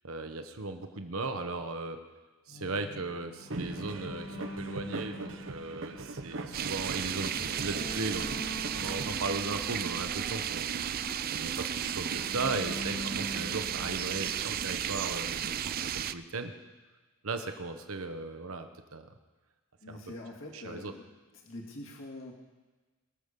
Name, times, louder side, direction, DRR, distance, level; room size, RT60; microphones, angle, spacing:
voice 1, 0.0-2.0 2.5-8.3 8.7-11.0 11.3-16.5 17.2-19.1 19.9-20.0 20.5-20.9, right 3 dB, 75° right, 7 dB, 1.1 m, -37 dB
sound 1, 2.5-15.0, left 1 dB, 40° left, 1.4 m, -45 dB
sound 2, 3.5-9.2, right 2 dB, 60° right, 0.8 m, -41 dB
sound 3, 6.5-16.1, right 9 dB, 40° right, 0.4 m, -34 dB
voice 2, 19.8-21.0 21.4-22.3, left 1 dB, 60° left, -1 dB, 2.1 m, -44 dB
21.5 x 7.3 x 6.7 m, 1.2 s
head